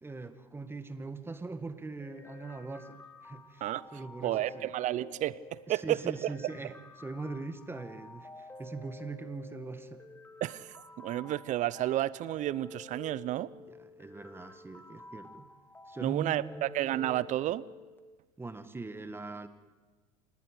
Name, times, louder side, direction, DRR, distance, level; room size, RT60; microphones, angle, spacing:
voice 1, 0.0-4.7 5.7-10.0 13.7-15.5 15.9-16.7 18.4-19.5, right 3 dB, 10° right, 11 dB, 1.6 m, -41 dB
sound 1, 2.0-18.0, left 2 dB, 10° left, 2.0 m, -51 dB
voice 2, 4.2-6.3 10.4-13.5 16.0-17.6, right 14 dB, 40° right, 21 dB, 0.7 m, -31 dB
27.5 x 19.5 x 5.0 m, 1.3 s
figure-of-eight pair, 75°, 19 cm